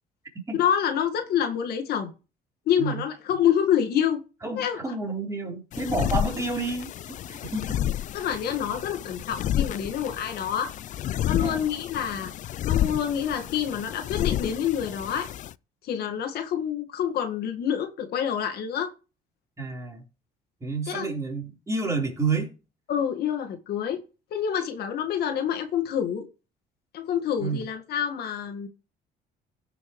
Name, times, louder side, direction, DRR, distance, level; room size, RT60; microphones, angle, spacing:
voice 1, 0.5-2.1 2.7-4.2 4.6-4.9 8.1-10.7 11.2-12.3 12.6-15.3 15.8-18.9 20.9-21.1 22.9-24.0 24.3-26.3 26.9-28.7, left 9 dB, 70° left, 1.8 m, -27 dB
voice 2, 4.4-7.8 11.3-11.7 19.6-20.0 20.6-22.5 27.4-27.6, right 3 dB, 20° right, 4.1 m, -30 dB
sound 1, 5.7-15.5, left 11 dB, 50° left, 0.4 m, -31 dB
16.5 x 6.2 x 3.2 m
cardioid pair, 110°, 17 cm